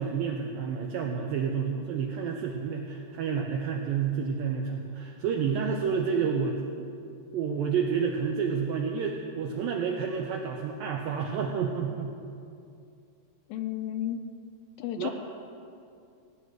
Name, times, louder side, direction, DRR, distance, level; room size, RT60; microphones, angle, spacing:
voice 1, 0.0-6.9 7.3-12.2 15.0-15.1, right 6 dB, 80° right, 2 dB, 2.1 m, -29 dB
voice 2, 13.5-14.2 14.8-15.1, left 11 dB, 85° left, 7 dB, 2.9 m, -32 dB
18.0 x 6.2 x 9.4 m, 2.5 s
omnidirectional pair, 5.1 m